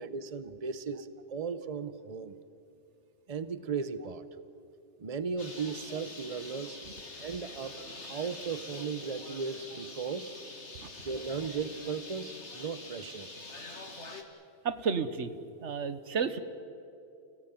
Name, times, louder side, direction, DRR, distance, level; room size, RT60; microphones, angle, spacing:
voice 1, 0.0-2.3 3.3-4.2 5.0-6.8 7.2-7.8 8.1-10.3 11.0-13.3, right 5 dB, 35° right, 13 dB, 0.9 m, -36 dB
Bird, 5.4-14.2, left 3 dB, 85° left, 2.7 m, -45 dB
voice 2, 14.6-15.3 15.6-16.4, right 5 dB, 85° right, 11 dB, 1.5 m, -31 dB
29.0 x 17.0 x 9.1 m, 2.7 s
omnidirectional pair, 1.2 m